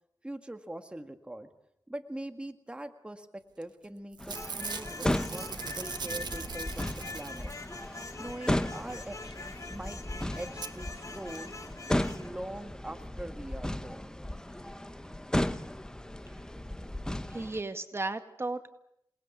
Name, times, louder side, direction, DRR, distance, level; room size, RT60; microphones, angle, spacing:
voice 1, 0.2-1.5 1.9-6.9 7.1-7.5 8.2-11.5 11.9-14.1, right 1 dB, 15° right, 6 dB, 1.8 m, -42 dB
Packing tape duct tape / Tearing, 3.6-3.9 4.1-7.7 9.7-9.8 9.9-10.0 10.6-10.7 11.4-11.5 11.7-11.8, right 5 dB, 75° right, 1.3 m, -40 dB
sound 1, 4.2-17.6, left 1 dB, 10° left, 1.2 m, -35 dB
sound 2, 4.3-12.3, left 3 dB, 50° left, 2.4 m, -44 dB
voice 2, 17.3-18.7, right 2 dB, 35° right, 8 dB, 1.9 m, -35 dB
28.5 x 20.0 x 8.4 m, 0.80 s
wide cardioid pair, 70°, 7 cm